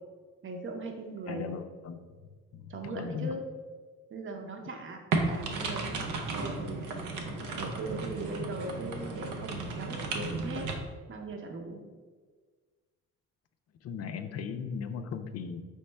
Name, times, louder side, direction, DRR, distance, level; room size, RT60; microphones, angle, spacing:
voice 1, 0.4-1.5 2.7-3.5 4.1-6.8 7.3-10.7 11.1-11.8, right 2 dB, 40° right, 3 dB, 0.7 m, -39 dB
voice 2, 1.3-2.0 2.5-3.4 13.8-15.7, left 6 dB, 55° left, 8 dB, 0.4 m, -37 dB
sound 1, 5.1-10.7, right 3 dB, 85° right, 0.6 m, -34 dB
4.2 x 3.1 x 3.3 m, 1.5 s
cardioid pair, 90°, 30 cm